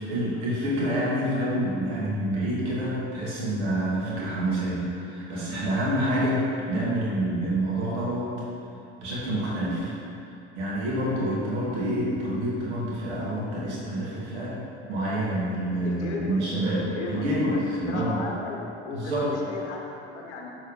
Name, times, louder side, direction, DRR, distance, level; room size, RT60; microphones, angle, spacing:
voice 1, 0.0-8.3 9.0-9.9 10.6-14.6 14.9-18.2 18.9-19.3, right 1 dB, 80° right, -6 dB, 1.4 m, -27 dB
voice 2, 15.8-20.5, left 3 dB, 85° left, 0 dB, 0.7 m, -36 dB
6.6 x 3.3 x 5.1 m, 2.8 s
hypercardioid pair, 65°, 34 cm